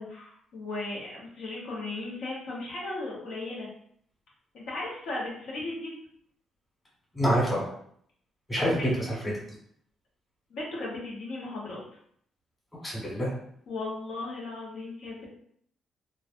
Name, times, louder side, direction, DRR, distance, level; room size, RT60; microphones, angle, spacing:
voice 1, 0.0-3.7 4.5-5.9 8.8-8.9 10.5-11.8 13.7-15.3, left 2 dB, 75° left, -5 dB, 0.9 m, -36 dB
voice 2, 7.1-7.7 8.5-9.3 12.7-13.3, equal, 15° left, -5 dB, 1.3 m, -27 dB
3.1 x 2.3 x 2.5 m, 0.65 s
cardioid pair, 90°, 0 cm